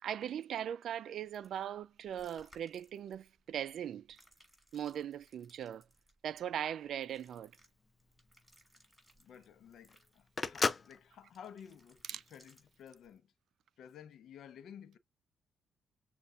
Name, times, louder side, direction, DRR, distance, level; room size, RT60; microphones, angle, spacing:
voice 1, 0.0-4.2 4.7-5.8 6.2-7.5 12.1-12.2, right 9 dB, 65° right, 0.3 m, -39 dB
sound 1, 1.3-13.2, right 1 dB, ahead, 3.1 m, -67 dB
Telephone, 7.5-12.7, left 4 dB, 30° left, 0.4 m, -38 dB
voice 2, 9.2-13.3 13.8-15.0, left 8 dB, 70° left, 0.7 m, -54 dB
6.7 x 2.4 x 2.5 m
cardioid pair, 90°, 0 cm